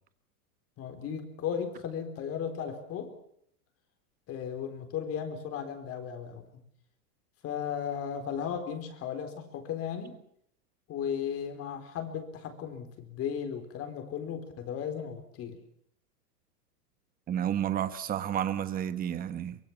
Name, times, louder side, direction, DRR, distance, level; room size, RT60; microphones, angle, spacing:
voice 1, 0.8-3.1 4.3-6.6 7.4-10.2 10.9-15.6, left 8 dB, 30° left, 8 dB, 4.2 m, -35 dB
voice 2, 17.3-19.6, right 10 dB, 20° right, 12 dB, 1.3 m, -31 dB
24.5 x 22.0 x 7.3 m, 0.70 s
supercardioid pair, 150°, 47 cm